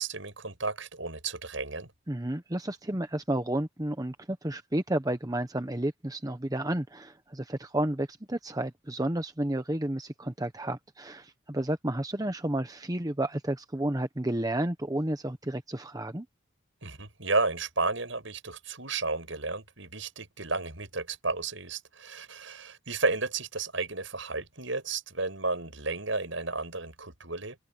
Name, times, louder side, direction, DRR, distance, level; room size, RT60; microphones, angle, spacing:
voice 1, 0.0-1.9 16.8-27.6, right 3 dB, 75° right, 7.7 m, -32 dB
voice 2, 2.1-16.3, right 1 dB, 20° right, 1.0 m, -31 dB
head